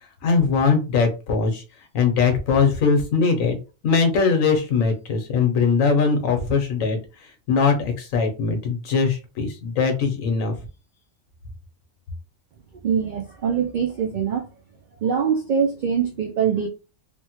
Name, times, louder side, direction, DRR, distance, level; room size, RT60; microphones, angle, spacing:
voice 1, 0.2-1.6 1.9-3.6 3.8-10.5, left 5 dB, 90° left, 1.2 m, -21 dB
voice 2, 12.8-14.5 15.0-16.7, right 7 dB, 90° right, 0.4 m, -23 dB
3.4 x 2.1 x 2.8 m
omnidirectional pair, 1.4 m